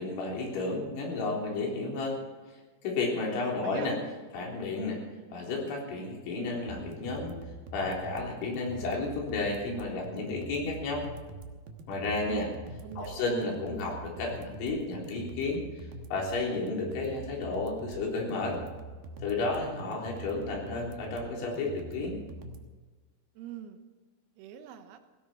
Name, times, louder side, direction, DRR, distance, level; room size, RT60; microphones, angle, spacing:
voice 1, 0.0-2.2 2.8-4.0 4.3-5.0 5.3-7.4 7.7-11.1 11.9-12.5 13.0-15.6 16.1-18.6 19.2-22.2, left 3 dB, 65° left, -2 dB, 6.0 m, -32 dB
voice 2, 3.4-3.9 12.2-13.3 23.4-23.8 24.4-25.0, right 10 dB, 90° right, 7 dB, 4.0 m, -45 dB
sound 1, 6.7-22.7, right 3 dB, 70° right, 2.2 m, -44 dB
17.0 x 17.0 x 4.5 m, 1.3 s
omnidirectional pair, 6.0 m